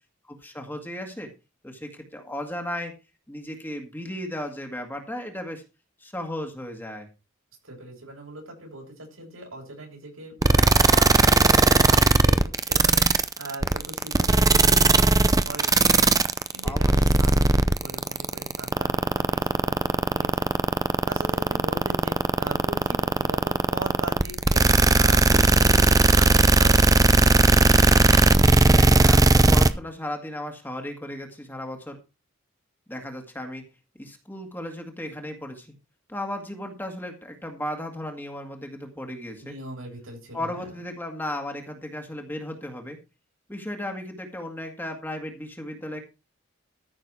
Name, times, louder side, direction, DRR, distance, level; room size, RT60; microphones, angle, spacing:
voice 1, 0.2-1.3 1.6-2.9 3.3-5.6 6.0-7.1 16.6-17.3 28.7-32.0 32.9-33.6 34.0-35.7 36.1-39.5 40.3-43.0 43.5-46.0, left 1 dB, 10° left, 3 dB, 1.9 m, -35 dB
voice 2, 7.6-13.1 13.4-16.1 16.5-20.5 21.0-27.4 39.4-40.8, right 2 dB, 85° right, -1 dB, 8.0 m, -41 dB
sound 1, 10.4-29.7, right 3 dB, 15° right, 0.6 m, -17 dB
14.0 x 6.5 x 4.7 m, 0.29 s
head